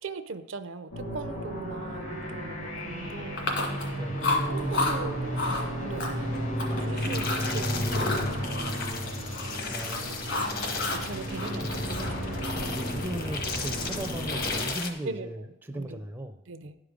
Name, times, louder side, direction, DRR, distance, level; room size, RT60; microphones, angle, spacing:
voice 1, 0.0-3.9 4.5-6.3 6.7-8.8 9.9-12.8 15.0-15.5 15.7-16.0 16.5-16.8, right 4 dB, 65° right, 11 dB, 0.5 m, -40 dB
sound 1, 0.9-14.6, equal, 80° left, 2.3 m, -33 dB
Chewing mastication, 3.4-3.9 4.2-5.0 5.3-5.6 6.0-6.8 7.2-7.5 7.9-9.5 9.8-11.1 11.3-12.7, left 3 dB, 60° left, 1.9 m, -31 dB
voice 2, 3.9-4.3 9.7-10.4 12.7-16.4, right 1 dB, 10° right, 5 dB, 0.4 m, -37 dB
sound 2, 7.0-14.9, left 4 dB, 45° left, 0.9 m, -35 dB
11.0 x 5.0 x 5.1 m, 0.97 s
head